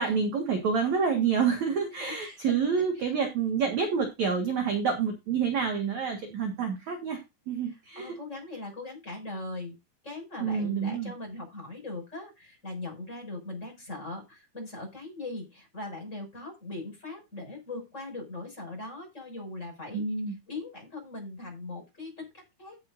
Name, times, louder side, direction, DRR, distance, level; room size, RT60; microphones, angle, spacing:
voice 1, 0.0-7.2 7.5-8.1 10.4-11.1 19.9-20.4, right 6 dB, 50° right, 4 dB, 2.4 m, -28 dB
voice 2, 1.9-3.1 7.6-9.7 10.0-20.0 20.5-22.8, left 2 dB, 15° left, 1 dB, 6.4 m, -40 dB
16.0 x 8.7 x 2.7 m, 0.24 s
omnidirectional pair, 5.2 m